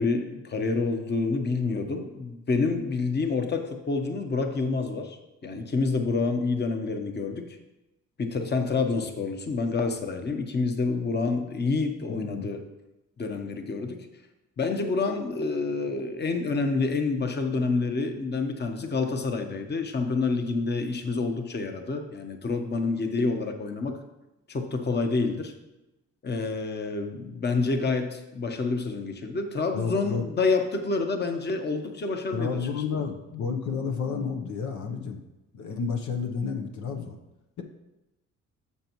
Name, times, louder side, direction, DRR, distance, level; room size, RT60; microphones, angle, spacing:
voice 1, 0.0-7.5 8.2-12.6 13.2-14.1 14.6-24.0 24.5-25.5 26.2-33.1, left 4 dB, 35° left, 5 dB, 1.1 m, -28 dB
voice 2, 12.1-12.5 29.7-30.3 32.3-35.2 35.5-37.1, left 5 dB, 70° left, 4 dB, 1.0 m, -31 dB
11.0 x 7.1 x 3.1 m, 0.97 s
cardioid pair, 90°, 30 cm